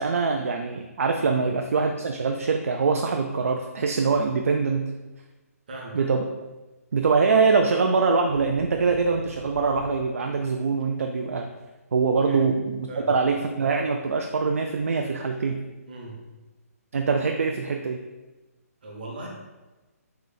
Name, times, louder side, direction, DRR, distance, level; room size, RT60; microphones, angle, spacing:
voice 1, 0.0-4.8 5.9-6.2 6.9-11.5 11.9-15.6 16.9-18.0, right 4 dB, 60° right, 4 dB, 0.3 m, -23 dB
voice 2, 5.7-6.0 12.1-12.5 12.9-13.2 15.9-16.3 18.8-19.3, right 2 dB, 35° right, -2 dB, 0.9 m, -39 dB
sound 1, 8.3-10.5 10.8-11.3, left 1 dB, 25° left, 0.4 m, -44 dB
3.9 x 3.0 x 3.9 m, 1.1 s
hypercardioid pair, 180°, 8 cm